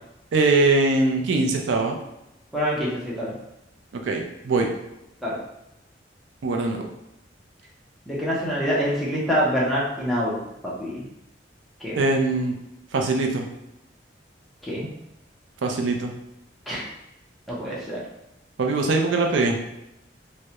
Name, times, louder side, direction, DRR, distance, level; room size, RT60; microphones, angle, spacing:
voice 1, 0.3-2.0 4.0-4.7 6.4-6.9 12.0-12.6 12.9-13.5 15.6-16.1 18.6-19.6, right 3 dB, 80° right, 3 dB, 0.4 m, -22 dB
voice 2, 2.5-3.3 5.2-5.4 8.1-10.4 10.6-11.0 11.8-12.1 14.6-14.9 16.7-16.8 17.5-18.0, equal, ahead, -7 dB, 0.6 m, -26 dB
2.2 x 2.1 x 2.8 m, 0.85 s
head